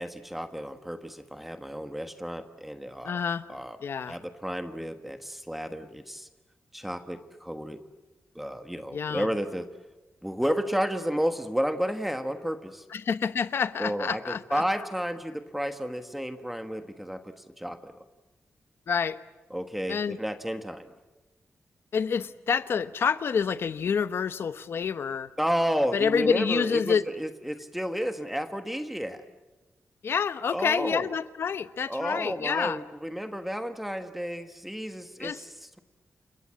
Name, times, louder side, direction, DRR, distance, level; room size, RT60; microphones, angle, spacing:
voice 1, 0.0-3.2 3.5-3.8 4.1-6.3 6.7-7.8 8.3-9.7 10.2-12.8 13.8-18.0 19.5-20.9 25.4-29.2 30.5-31.1 31.9-35.8, equal, 5° right, 8 dB, 1.3 m, -32 dB
voice 2, 3.0-3.4 3.8-4.2 8.9-9.3 12.9-14.6 18.9-19.2 19.9-20.2 21.9-25.3 25.9-27.1 30.0-32.8 35.2-35.4, left 6 dB, 60° left, 13 dB, 1.0 m, -28 dB
29.5 x 26.5 x 7.6 m, 1.1 s
wide cardioid pair, 165°, 5 cm